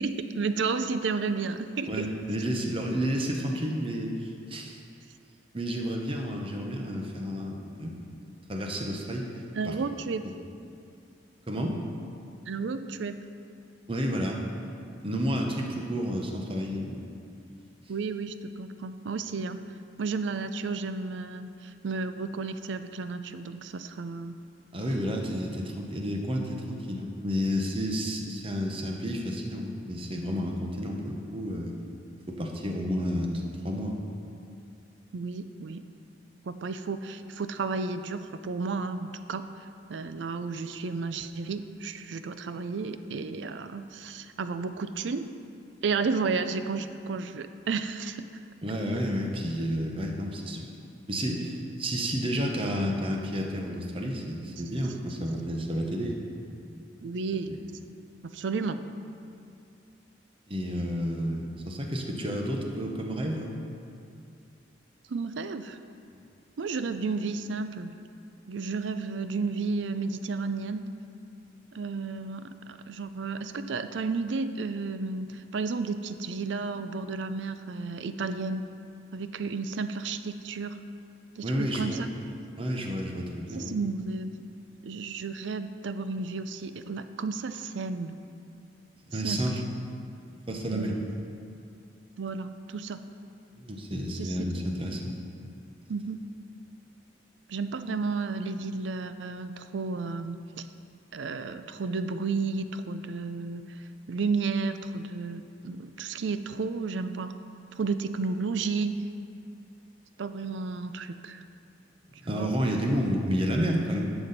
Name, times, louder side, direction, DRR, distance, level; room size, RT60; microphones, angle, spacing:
voice 1, 0.0-2.1 9.5-10.3 12.5-13.2 17.9-19.6 20.0-24.4 35.1-35.9 36.4-45.3 45.8-48.3 57.0-57.5 58.2-58.8 65.1-65.8 66.6-68.0 68.5-70.9 71.7-78.7 79.1-80.8 81.4-82.1 83.5-84.4 84.8-88.2 89.2-89.6 90.7-91.0 92.2-93.0 94.1-95.0 95.9-96.2 97.5-100.7 101.1-103.8 104.1-107.3 107.8-109.0 110.2-111.4 112.2-112.6, right 4 dB, 75° right, 10 dB, 0.5 m, -32 dB
voice 2, 1.9-4.8 5.5-8.2 8.5-9.3 9.6-9.8 10.2-10.3 11.5-11.8 13.9-14.4 15.0-17.1 24.7-31.7 32.3-34.0 48.6-50.7 51.1-56.2 57.5-57.6 60.5-63.5 66.1-66.2 81.4-82.0 82.6-83.7 89.1-89.5 90.5-91.0 93.6-95.2 112.2-114.0, equal, 30° right, 1 dB, 0.9 m, -31 dB
11.5 x 7.0 x 4.1 m, 2.4 s
head